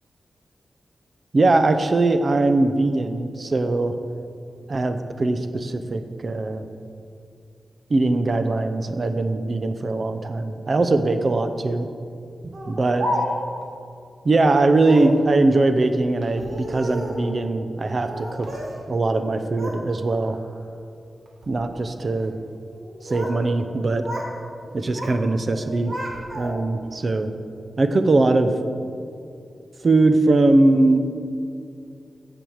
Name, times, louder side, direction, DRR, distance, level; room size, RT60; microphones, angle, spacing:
voice 1, 1.3-3.9 4.7-6.7 7.9-11.9 12.4-13.0 14.2-20.4 21.5-22.3 23.0-24.1 24.7-25.9 26.3-27.3 27.8-28.5 29.8-31.0, right 2 dB, 35° right, 9 dB, 0.6 m, -21 dB
Speech, 12.5-13.6 14.8-15.2 16.2-17.3 18.0-18.8 19.1-19.8 20.2-20.6 21.3-21.6 22.7-23.4 23.7-24.3 24.6-25.2 25.5-26.8, equal, 55° right, 1.5 m, -32 dB
9.2 x 6.8 x 6.4 m, 2.5 s
wide cardioid pair, 150°, 0 cm